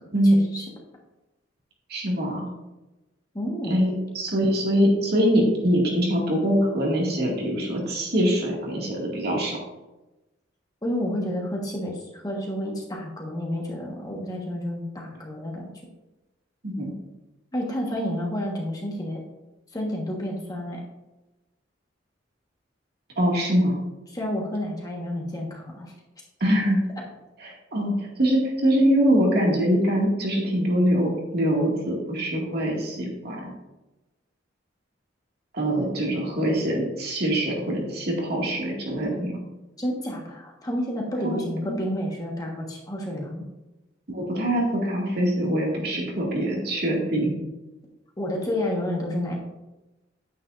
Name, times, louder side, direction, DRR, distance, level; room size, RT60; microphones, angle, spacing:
voice 1, 0.2-0.7 3.3-3.8 10.8-15.7 17.5-19.2 19.7-20.8 24.1-26.0 39.8-43.4 48.2-49.4, left 1 dB, 20° left, -1 dB, 1.4 m, -30 dB
voice 2, 1.9-2.4 3.7-9.6 16.6-16.9 23.2-23.8 26.4-26.8 27.4-33.5 35.5-39.4 41.2-41.4 41.6-41.8 44.1-47.3, equal, 55° right, -2 dB, 2.2 m, -23 dB
9.2 x 8.8 x 2.6 m, 1.0 s
head